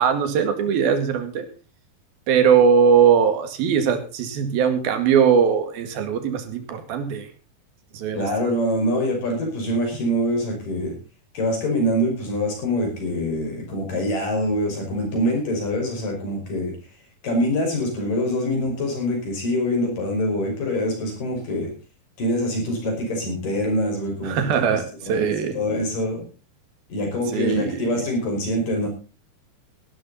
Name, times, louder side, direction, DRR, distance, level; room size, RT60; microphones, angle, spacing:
voice 1, 0.0-1.5 2.3-7.3 7.9-8.3 24.2-25.5 27.3-27.9, right 7 dB, 85° right, 8 dB, 3.8 m, -20 dB
voice 2, 8.1-10.9 11.3-16.8 17.2-21.7 22.2-24.4 24.7-26.3 26.9-28.9, equal, 65° left, 1 dB, 7.3 m, -24 dB
17.0 x 12.5 x 4.1 m, 0.33 s
omnidirectional pair, 4.1 m